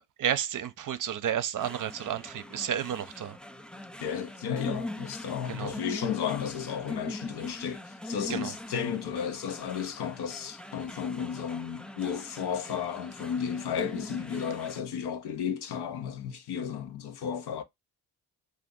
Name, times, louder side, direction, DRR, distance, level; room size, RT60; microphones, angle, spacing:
voice 1, 0.0-3.4 5.5-5.7 8.3-8.5, right 9 dB, 50° right, 0.6 m, -32 dB
sound 1, 1.6-14.8, left 1 dB, 5° left, 0.3 m, -42 dB
voice 2, 4.0-17.6, left 8 dB, 80° left, 0.8 m, -33 dB
2.6 x 2.5 x 3.6 m
cardioid pair, 65°, 40 cm